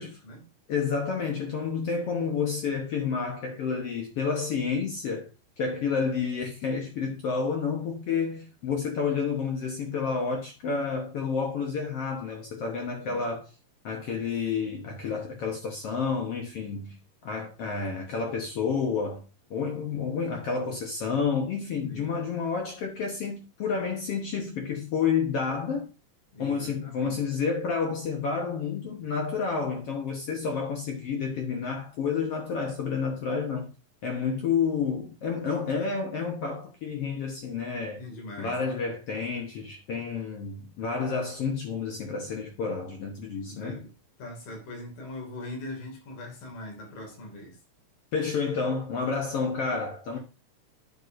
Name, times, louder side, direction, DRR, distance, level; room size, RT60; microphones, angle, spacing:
voice 1, 0.0-0.5 13.0-13.2 21.9-22.3 26.3-27.2 38.0-38.6 43.4-43.9 44.2-47.6, left 1 dB, 85° left, 4.1 m, -41 dB
voice 2, 0.7-5.3 5.6-13.4 13.8-17.0 17.2-19.2 19.5-25.9 26.4-33.7 34.0-38.0 38.4-43.8 48.1-50.2, left 5 dB, 65° left, 1.6 m, -30 dB
9.9 x 5.4 x 2.6 m
omnidirectional pair, 3.9 m